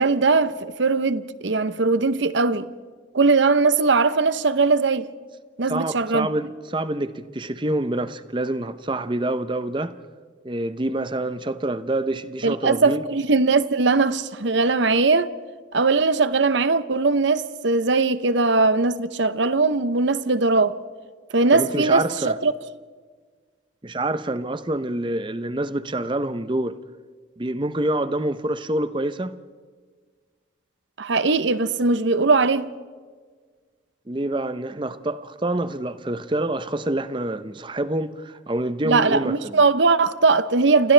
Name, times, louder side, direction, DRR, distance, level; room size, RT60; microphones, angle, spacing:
voice 1, 0.0-2.7 3.1-5.1 5.6-6.3 12.4-15.3 15.7-20.8 21.3-22.5 31.0-32.7 38.8-40.9, right 3 dB, 70° right, 0.8 m, -20 dB
voice 2, 5.7-10.0 10.4-13.0 21.5-22.4 23.8-26.8 27.4-29.4 34.1-39.6, right 1 dB, 25° right, 0.7 m, -26 dB
29.0 x 28.0 x 3.3 m
head